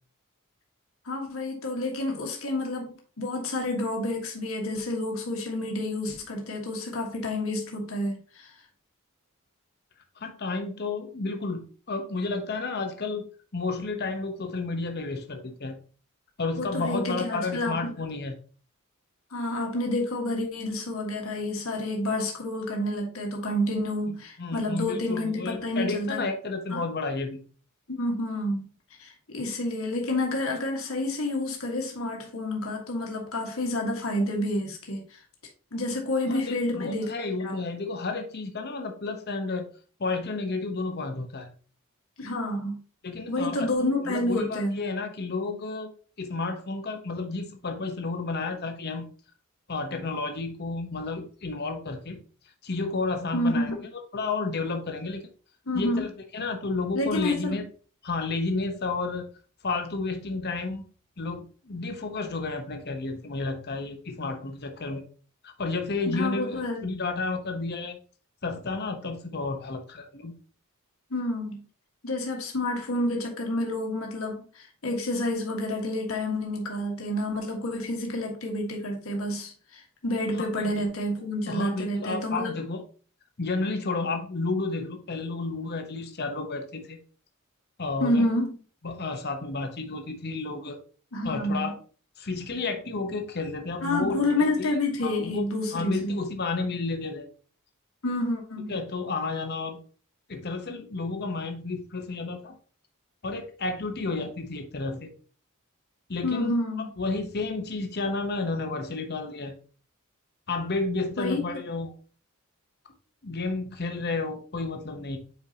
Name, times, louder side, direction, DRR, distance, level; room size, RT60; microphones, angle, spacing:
voice 1, 1.0-8.5 16.6-17.9 19.3-26.3 26.7-26.9 27.9-28.7 29.0-35.2 35.7-37.1 37.4-37.6 42.2-42.8 43.3-44.8 53.3-53.9 55.7-56.1 56.9-57.6 66.0-66.8 71.1-71.6 72.0-82.6 88.0-88.6 91.1-91.7 93.8-96.2 98.0-98.7 106.2-106.9 111.2-111.4, left 1 dB, 70° left, 0 dB, 1.6 m, -29 dB
voice 2, 10.2-13.2 13.5-15.8 16.4-18.3 24.1-27.4 36.3-39.7 40.0-41.5 43.0-43.7 44.1-45.9 46.2-49.1 49.7-52.2 52.6-53.7 54.1-55.3 55.7-57.7 58.0-59.3 59.6-60.8 61.2-65.0 65.4-68.0 68.4-70.3 80.4-80.5 80.8-80.9 81.5-82.8 83.4-87.0 87.8-88.3 88.8-90.8 91.2-91.7 92.2-94.2 94.6-94.7 95.0-95.4 95.7-97.3 98.7-99.8 100.3-102.5 103.2-105.1 106.1-106.5 107.0-109.6 110.5-111.9 113.2-115.2, left 3 dB, 50° left, 5 dB, 0.9 m, -31 dB
8.1 x 4.6 x 2.8 m, 0.40 s
head